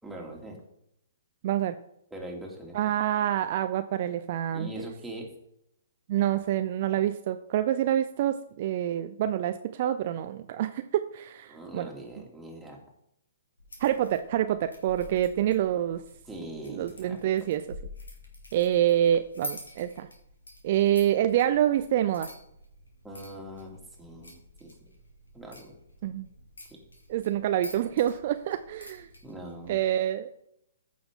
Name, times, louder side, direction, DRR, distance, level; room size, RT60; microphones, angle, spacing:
voice 1, 0.0-0.6 2.1-2.9 4.5-5.3 11.5-12.8 16.3-17.2 23.0-24.9 25.3-25.7 29.2-29.8, right 1 dB, 5° right, -2 dB, 2.6 m, -42 dB
voice 2, 1.4-1.7 2.7-4.7 6.1-11.9 13.8-16.0 16.7-17.6 18.5-20.1 20.6-22.3 26.0-26.3 27.1-29.1 29.7-30.3, right 11 dB, 50° right, 9 dB, 0.5 m, -27 dB
sound 1, 13.6-29.7, left 1 dB, 85° left, 2.8 m, -47 dB
14.5 x 6.1 x 3.8 m, 0.76 s
hypercardioid pair, 125°, 0 cm